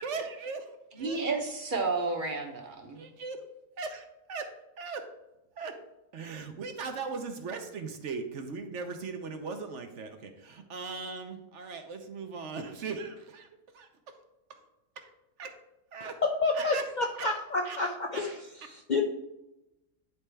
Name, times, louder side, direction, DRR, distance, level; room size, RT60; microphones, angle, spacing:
voice 1, 0.0-1.2 2.9-3.4 3.8-5.1 5.6-5.8 6.1-13.5 13.7-14.1 14.5-14.6 15.0-15.1 15.4-15.5 15.9-16.2 16.5-17.4 17.6-17.8 18.1-18.3 18.6-18.7, right 4 dB, 65° right, 6 dB, 1.0 m, -39 dB
voice 2, 1.0-3.0, right 3 dB, 40° right, 3 dB, 1.0 m, -31 dB
voice 3, 16.4-18.3 18.9-19.0, left 3 dB, 50° left, 2 dB, 0.5 m, -29 dB
9.7 x 4.2 x 3.4 m, 0.94 s
omnidirectional pair, 1.4 m